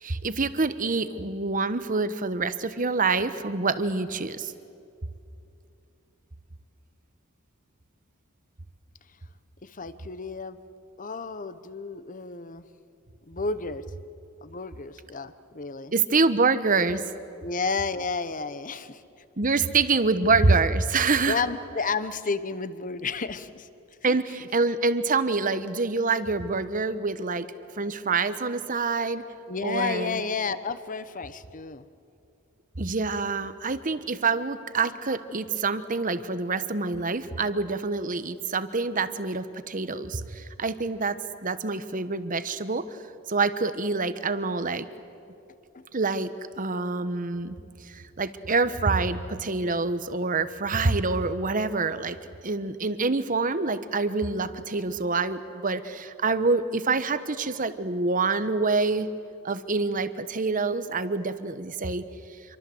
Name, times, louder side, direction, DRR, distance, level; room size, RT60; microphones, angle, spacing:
voice 1, 0.0-4.5 15.9-17.0 19.4-21.4 24.0-27.5 27.8-29.2 29.6-30.2 32.8-42.8 43.3-44.9 45.9-46.3 46.6-47.6 47.9-52.2 52.4-59.1 59.4-62.0, right 3 dB, 40° right, 12 dB, 1.1 m, -26 dB
voice 2, 9.6-10.6 11.0-12.6 13.3-13.8 14.4-15.9 17.4-19.0 21.2-23.7 24.0-24.2 29.5-31.8 45.7-45.8, left 4 dB, 35° left, 13 dB, 1.0 m, -31 dB
27.5 x 23.5 x 7.9 m, 2.7 s
head